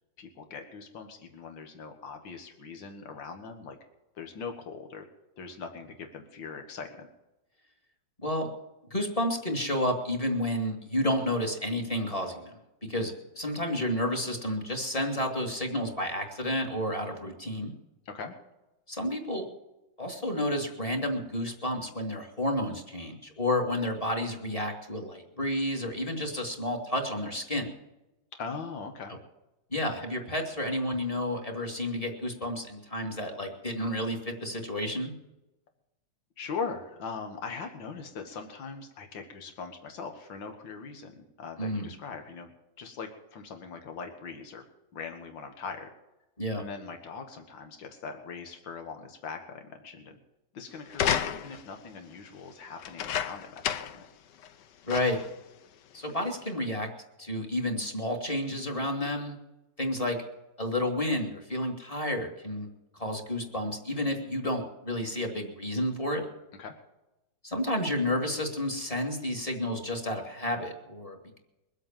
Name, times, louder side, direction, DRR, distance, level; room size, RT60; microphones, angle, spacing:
voice 1, 0.2-3.8 4.2-5.1 5.4-7.1 18.1-18.4 28.4-29.2 36.4-42.5 42.8-44.6 44.9-45.9 46.6-50.2 50.5-54.0 66.6-66.7, left 5 dB, 85° left, 5 dB, 2.3 m, -41 dB
voice 2, 8.9-12.6 12.9-17.7 18.9-19.5 20.0-27.7 29.1-29.2 29.7-35.1 41.6-41.9 46.4-46.6 54.9-55.2 55.9-56.9 57.2-59.4 59.8-60.2 60.6-62.7 63.0-66.3 67.4-71.4, left 1 dB, 20° left, 2 dB, 2.3 m, -31 dB
sound 1, 50.9-51.7 52.8-54.1 54.4-54.5 54.9-55.3 56.1-56.2, left 9 dB, 70° left, 1.4 m, -31 dB
22.5 x 8.1 x 7.4 m, 0.96 s
omnidirectional pair, 2.0 m